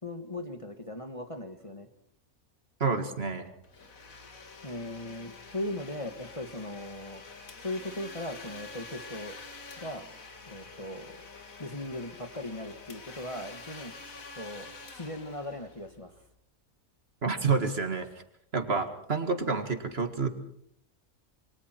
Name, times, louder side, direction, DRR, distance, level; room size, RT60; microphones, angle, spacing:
voice 1, 0.0-1.9 4.6-7.2 7.6-9.4 9.8-10.1 10.5-11.2 11.6-13.9 14.4-16.1, left 1 dB, 25° left, 5 dB, 1.7 m, -38 dB
voice 2, 2.8-3.5 17.2-18.1 18.5-20.3, right 4 dB, 45° right, 7 dB, 2.1 m, -28 dB
Domestic sounds home sounds, 3.6-16.2, left 4 dB, 70° left, 2.4 m, -47 dB
27.5 x 24.0 x 4.6 m, 0.68 s
omnidirectional pair, 1.5 m